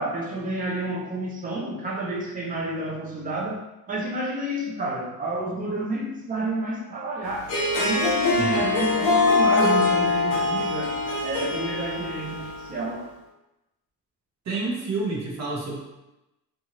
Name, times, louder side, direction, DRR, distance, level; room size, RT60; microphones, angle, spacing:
voice 1, 0.0-13.1, right 1 dB, 25° right, -3 dB, 0.4 m, -30 dB
Harp, 7.3-12.8, left 3 dB, 75° left, 0.9 m, -23 dB
voice 2, 14.5-15.8, right 3 dB, 45° right, -3 dB, 0.8 m, -29 dB
2.7 x 2.4 x 2.8 m, 0.96 s
cardioid pair, 155°, 37 cm